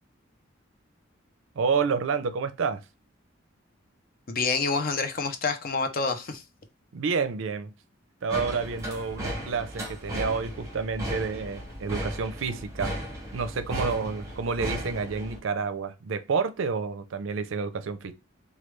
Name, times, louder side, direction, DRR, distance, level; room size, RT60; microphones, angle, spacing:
voice 1, 1.6-2.8 6.9-7.7 8.2-13.0 13.3-18.1, right 5 dB, 70° right, 0.4 m, -29 dB
voice 2, 4.3-6.4, left 4 dB, 45° left, 0.6 m, -27 dB
sound 1, 8.3-15.4, equal, 15° right, 1.2 m, -35 dB
3.2 x 2.3 x 3.0 m
head